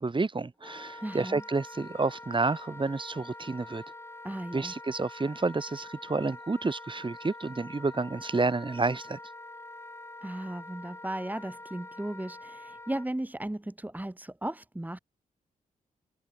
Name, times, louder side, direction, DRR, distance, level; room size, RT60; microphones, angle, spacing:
voice 1, 0.0-3.8 4.5-9.2, right 3 dB, 35° right, 1.8 m, -30 dB
Wind instrument woodwind instrument, 0.6-13.1, left 2 dB, 15° left, 2.0 m, -46 dB
voice 2, 1.0-1.4 4.2-4.7 10.2-15.0, right 1 dB, 10° right, 1.6 m, -36 dB
open air
cardioid pair, 50°, 15 cm